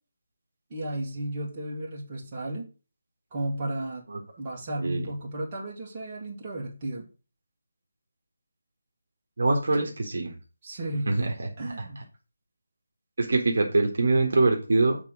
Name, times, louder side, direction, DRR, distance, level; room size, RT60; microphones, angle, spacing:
voice 1, 0.7-2.7 3.3-4.0 4.4-7.1 9.7-9.9 10.6-12.0, right 1 dB, 25° right, -3 dB, 2.2 m, -34 dB
voice 2, 9.4-10.3 11.1-11.5 13.2-15.0, right 2 dB, 60° right, 2 dB, 1.6 m, -23 dB
7.3 x 3.6 x 6.2 m, 0.33 s
figure-of-eight pair, 170°, 0 cm